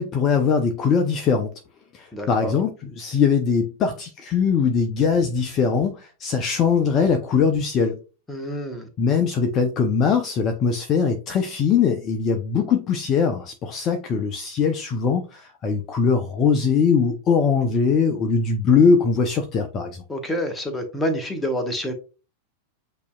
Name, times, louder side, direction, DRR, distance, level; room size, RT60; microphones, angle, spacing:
voice 1, 0.0-1.5 1.9-8.0 9.0-20.0, left 5 dB, 30° left, 0.6 m, -21 dB
voice 2, 2.1-2.6 8.3-8.9 20.1-21.9, equal, 10° left, 1.0 m, -27 dB
8.2 x 2.8 x 2.2 m
figure-of-eight pair, 90°, 0 cm